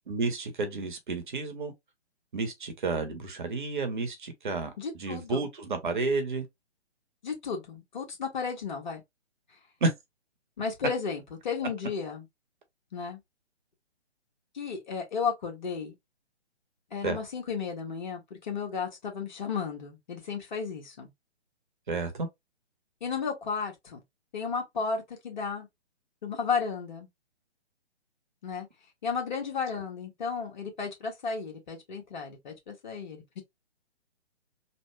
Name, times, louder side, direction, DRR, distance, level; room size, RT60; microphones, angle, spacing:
voice 1, 0.1-1.7 2.3-4.7 5.0-6.4 9.8-9.9 17.0-17.2 21.9-22.3, right 3 dB, 45° right, 0.9 m, -31 dB
voice 2, 4.8-5.5 7.2-9.0 10.6-12.3 12.9-13.2 14.5-15.9 16.9-21.1 23.0-24.0 24.3-25.7 26.2-27.1 28.4-28.7 29.0-33.4, left 5 dB, 40° left, 1.3 m, -33 dB
3.3 x 2.1 x 3.1 m
figure-of-eight pair, 135°, 34 cm